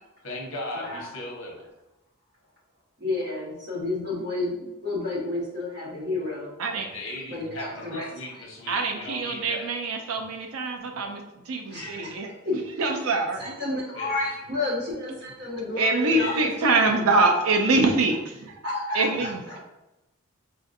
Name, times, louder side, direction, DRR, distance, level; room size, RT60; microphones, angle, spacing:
voice 1, 0.2-1.7 6.7-9.7 11.7-12.1 12.8-12.9 13.9-14.3 16.1-16.5, left 1 dB, 60° left, -2 dB, 0.9 m, -37 dB
voice 2, 0.7-1.2 3.0-6.5 7.3-8.1 11.7-12.8 13.4-16.9 18.6-19.6, left 2 dB, 50° right, -6 dB, 1.3 m, -31 dB
voice 3, 8.7-12.3 12.8-13.5 15.8-18.5 18.9-19.4, right 3 dB, 80° right, 4 dB, 0.5 m, -24 dB
4.8 x 2.5 x 2.5 m, 0.98 s
head